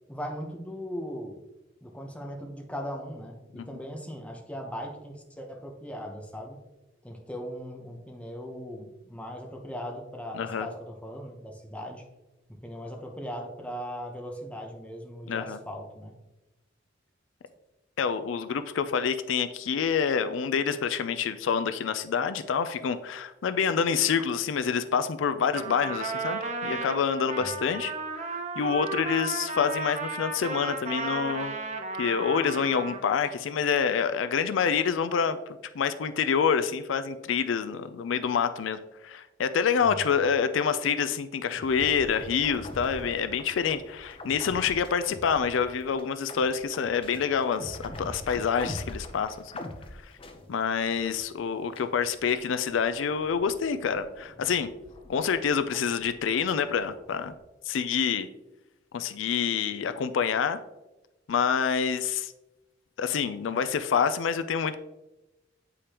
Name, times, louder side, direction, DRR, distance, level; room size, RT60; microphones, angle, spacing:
voice 1, 0.1-1.4 1.8-6.6 7.0-12.0 12.6-16.1 27.4-27.6 39.8-40.2, equal, 5° left, 2 dB, 1.0 m, -39 dB
voice 2, 10.3-10.7 15.3-15.6 18.0-27.9 28.3-31.5 32.0-35.4 35.7-49.4 50.0-50.1 50.5-54.7 55.1-57.3 57.7-58.3 58.9-60.6 61.3-62.3 63.0-64.7, left 6 dB, 75° left, 11 dB, 0.4 m, -27 dB
Trumpet, 25.5-33.4, right 3 dB, 40° right, 0.7 m, -34 dB
sound 1, 41.5-51.4 51.7-57.4, left 1 dB, 30° left, 0.6 m, -44 dB
8.4 x 4.9 x 2.9 m, 0.99 s
head